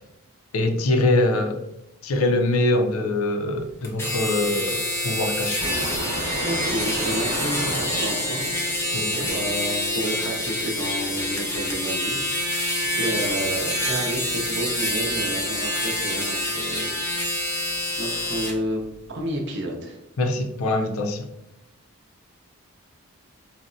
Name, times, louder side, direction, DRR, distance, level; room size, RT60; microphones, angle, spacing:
voice 1, 0.5-1.6 2.0-5.6 8.9-9.3 20.2-21.2, left 2 dB, 75° left, 5 dB, 0.4 m, -23 dB
sound 1, 3.8-18.5, left 1 dB, 10° left, 0.4 m, -27 dB
sound 2, 5.6-9.6, right 1 dB, 90° right, 1.0 m, -32 dB
voice 2, 6.4-8.9 9.1-17.0 17.3-17.7 18.0-18.8 19.1-20.0, right 1 dB, 55° right, 1 dB, 0.6 m, -31 dB
4.0 x 2.1 x 2.5 m, 0.88 s
head